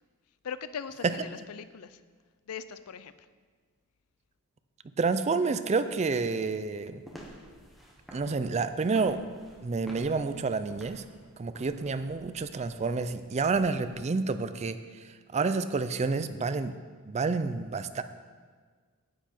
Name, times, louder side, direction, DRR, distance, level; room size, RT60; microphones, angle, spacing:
voice 1, 0.4-2.0 2.5-3.1, left 7 dB, 75° left, 14 dB, 0.4 m, -40 dB
voice 2, 5.0-7.0 8.1-9.3 9.6-11.0 11.4-14.8 15.3-16.8 17.1-18.0, right 4 dB, 30° right, 11 dB, 0.4 m, -29 dB
sound 1, 6.9-14.0, equal, ahead, 1.3 m, -51 dB
10.0 x 8.2 x 4.4 m, 1.6 s
head